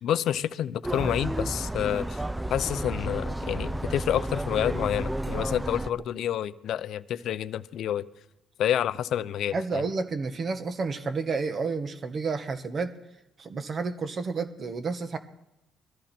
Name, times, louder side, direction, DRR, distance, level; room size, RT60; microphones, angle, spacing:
voice 1, 0.0-2.2 2.5-8.1 8.6-9.8, left 10 dB, 75° left, 15 dB, 0.6 m, -28 dB
sound 1, 0.8-5.9, right 1 dB, 10° right, 0.5 m, -31 dB
voice 2, 9.5-12.9 13.4-15.2, right 4 dB, 45° right, 8 dB, 1.5 m, -30 dB
21.5 x 14.0 x 4.4 m, 0.89 s
cardioid pair, 90°, 0 cm